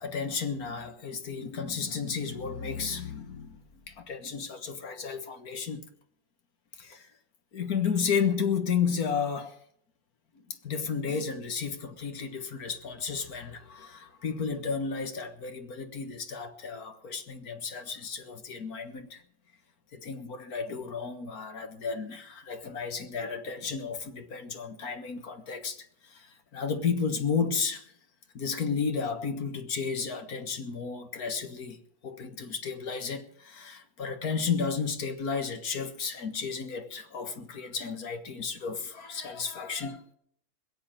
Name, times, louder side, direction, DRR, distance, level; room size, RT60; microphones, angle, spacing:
voice 1, 0.0-5.8 6.8-7.1 7.5-9.6 10.5-19.2 19.9-26.3 26.5-27.9 28.4-40.0, left 6 dB, 55° left, 1.8 m, -33 dB
21.0 x 8.3 x 6.5 m
omnidirectional pair, 2.0 m